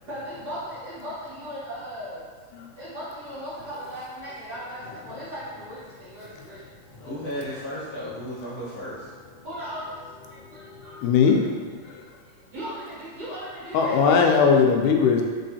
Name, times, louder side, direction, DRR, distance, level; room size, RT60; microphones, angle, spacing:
voice 1, 0.1-2.2 2.8-6.6 7.0-7.1 9.4-10.0 10.5-11.0 11.2-11.3 12.5-14.0, equal, 80° right, -11 dB, 0.9 m, -37 dB
voice 2, 7.0-9.1, equal, 50° left, -12 dB, 1.2 m, -34 dB
voice 3, 11.0-11.4 13.7-15.2, left 6 dB, 85° left, 1 dB, 2.1 m, -18 dB
4.8 x 3.7 x 2.7 m, 1.5 s
omnidirectional pair, 3.6 m